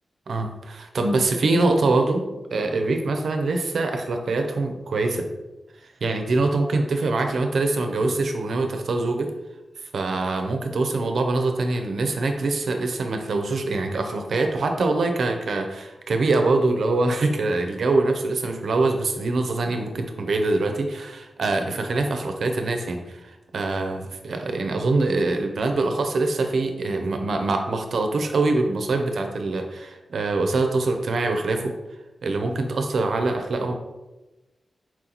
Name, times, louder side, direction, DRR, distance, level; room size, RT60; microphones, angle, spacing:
voice 1, 0.3-5.3 6.0-9.3 9.9-31.7 32.2-33.7, right 3 dB, 80° right, 5 dB, 0.5 m, -24 dB
4.4 x 2.9 x 3.9 m, 1.1 s
cardioid pair, 70°, 0 cm